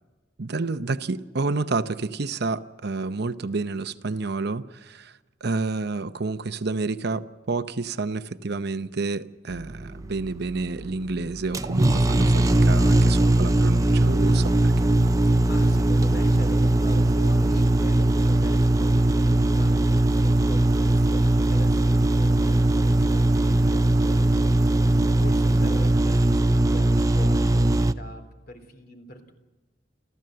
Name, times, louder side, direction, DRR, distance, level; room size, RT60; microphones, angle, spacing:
voice 1, 0.4-14.9 25.4-25.8, right 3 dB, 60° right, 0.8 m, -29 dB
sound 1, 9.5-27.9, right 1 dB, 20° right, 0.7 m, -20 dB
voice 2, 15.4-29.3, equal, 55° left, 3.7 m, -43 dB
29.5 x 14.0 x 7.8 m
head